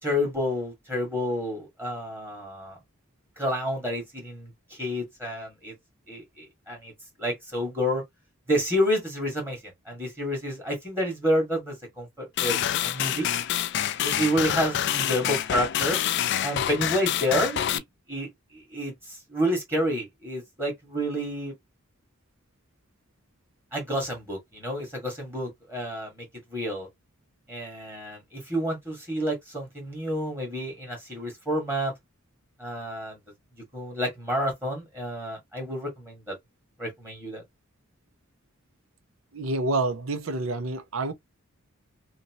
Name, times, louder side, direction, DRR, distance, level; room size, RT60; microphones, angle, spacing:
voice 1, 0.0-2.8 3.4-5.7 6.1-6.9 7.2-8.0 8.5-13.3 14.0-16.0 16.4-17.8 18.1-21.5 23.7-26.9 27.5-31.9 32.6-33.2 33.7-36.4 36.8-37.4, equal, 10° right, 1.6 m, -29 dB
sound 1, 12.4-17.8, left 10 dB, 55° left, 0.3 m, -27 dB
voice 2, 39.3-41.1, right 2 dB, 80° right, 0.7 m, -28 dB
2.9 x 2.7 x 2.8 m
head